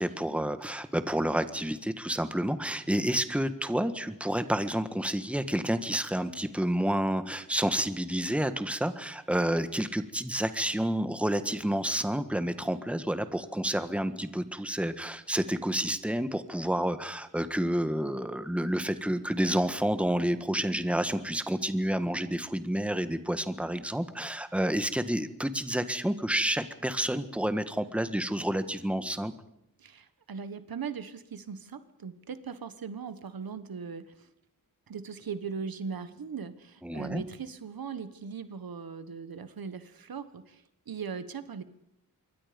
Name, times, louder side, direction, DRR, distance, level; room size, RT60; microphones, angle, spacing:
voice 1, 0.0-29.3 36.8-37.2, right 1 dB, 5° right, 10 dB, 1.5 m, -29 dB
voice 2, 29.8-34.3 34.9-41.6, right 6 dB, 80° right, 12 dB, 1.5 m, -39 dB
26.5 x 23.0 x 5.3 m, 0.80 s
wide cardioid pair, 105°, 35 cm